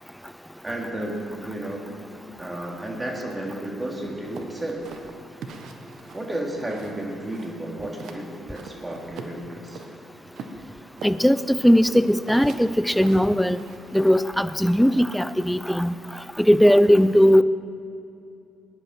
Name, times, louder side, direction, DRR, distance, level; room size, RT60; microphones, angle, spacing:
voice 1, 0.6-1.9 2.4-5.0 6.1-9.8, right 1 dB, 20° right, -1 dB, 3.3 m, -32 dB
sound 1, 4.3-7.0 7.3-8.2 8.5-9.9 10.3-14.2, right 5 dB, 65° right, 1.2 m, -42 dB
voice 2, 11.0-13.6 13.9-15.9 16.4-17.4, equal, ahead, 14 dB, 0.6 m, -18 dB
19.5 x 10.5 x 4.5 m, 2.6 s
hypercardioid pair, 50°, 0 cm